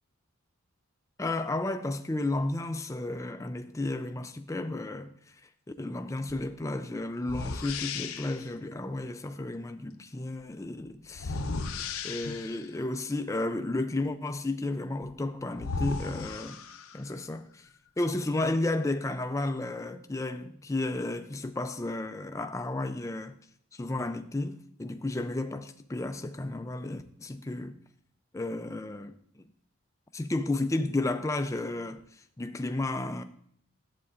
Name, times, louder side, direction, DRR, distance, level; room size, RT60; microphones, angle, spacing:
voice 1, 1.2-5.1 5.7-11.4 12.0-16.6 16.9-17.7 18.0-23.3 23.7-27.8 28.3-29.1 30.1-33.2, left 2 dB, 15° left, 0.3 m, -32 dB
sound 1, 6.3-6.5 7.2-8.5 11.1-12.7 15.0-15.1 15.6-17.2, left 4 dB, 70° left, 0.6 m, -35 dB
11.0 x 8.0 x 2.5 m
head